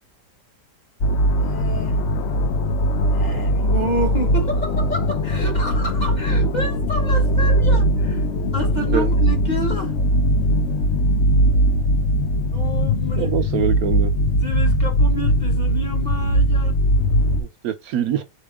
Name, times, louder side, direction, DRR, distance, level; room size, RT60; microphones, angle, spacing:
sound 1, 1.0-17.4, equal, 65° left, 0.7 m, -20 dB
voice 1, 1.3-2.0 3.1-8.3 8.5-9.9 12.5-13.3 14.4-16.7, equal, 30° left, 1.0 m, -29 dB
voice 2, 13.2-14.1 17.4-18.2, right 9 dB, 70° right, 0.9 m, -24 dB
4.3 x 2.9 x 3.5 m
omnidirectional pair, 1.7 m